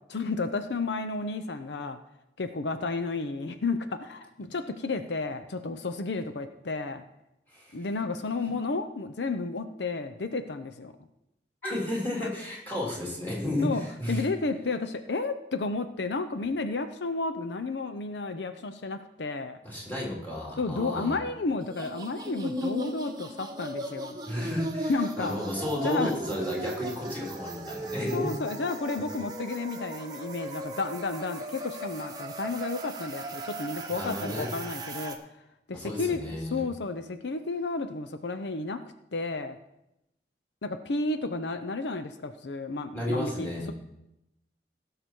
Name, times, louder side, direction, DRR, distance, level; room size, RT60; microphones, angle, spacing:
voice 1, 0.1-2.0 2.4-7.0 7.7-10.9 12.2-12.3 13.6-13.8 14.1-19.6 20.6-24.2 24.9-25.4 25.8-26.1 28.1-35.2 35.7-38.8 39.1-39.6 40.6-43.7, left 3 dB, 80° left, 9 dB, 0.7 m, -32 dB
voice 2, 7.5-7.9 8.4-8.5 11.6-14.3 19.6-21.2 24.2-28.3 33.9-34.6 35.7-36.6 42.9-43.7, left 1 dB, 10° left, -4 dB, 3.2 m, -32 dB
sound 1, 21.6-35.2, right 1 dB, 20° right, 1.0 m, -37 dB
17.0 x 6.7 x 4.5 m, 0.86 s
head